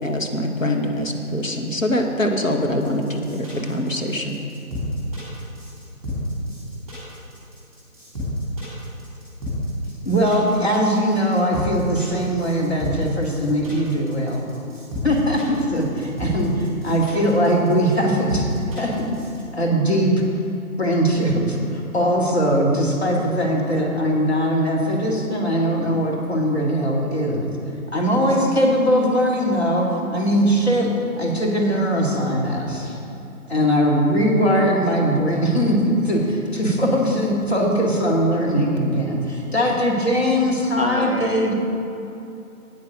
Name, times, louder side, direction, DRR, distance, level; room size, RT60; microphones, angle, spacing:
voice 1, 0.0-4.4, left 1 dB, 60° left, 2 dB, 1.5 m, -24 dB
sound 1, 2.8-19.4, left 1 dB, ahead, 2.5 m, -31 dB
voice 2, 10.1-14.5 15.0-18.5 18.8-19.1 19.5-20.1 20.8-27.5 27.9-33.0 33.5-41.5, equal, 45° left, -2 dB, 2.2 m, -20 dB
voice 3, 40.8-41.5, equal, 40° right, 5 dB, 0.6 m, -27 dB
9.2 x 8.8 x 6.3 m, 2.8 s
figure-of-eight pair, 160°, 44 cm